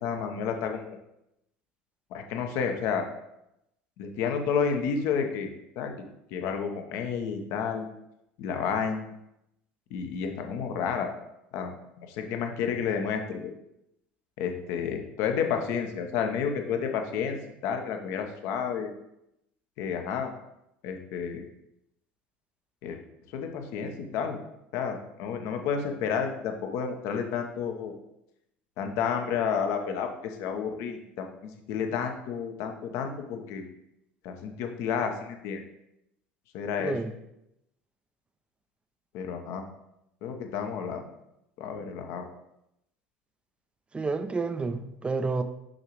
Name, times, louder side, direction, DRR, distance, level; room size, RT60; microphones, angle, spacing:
voice 1, 0.0-1.0 2.1-3.1 4.0-5.5 5.8-5.9 6.3-7.9 8.4-9.1 9.9-11.1 11.5-13.5 14.4-17.4 17.6-18.9 19.8-20.3 20.8-21.4 22.8-23.0 23.3-24.4 24.7-27.9 28.8-33.6 34.2-35.6 36.5-36.9 39.1-39.6 40.2-41.0 41.6-42.3, left 6 dB, 55° left, 5 dB, 0.9 m, -31 dB
voice 2, 43.9-45.4, right 4 dB, 20° right, 10 dB, 0.6 m, -29 dB
6.5 x 5.7 x 3.1 m, 0.84 s
figure-of-eight pair, 70°, 6 cm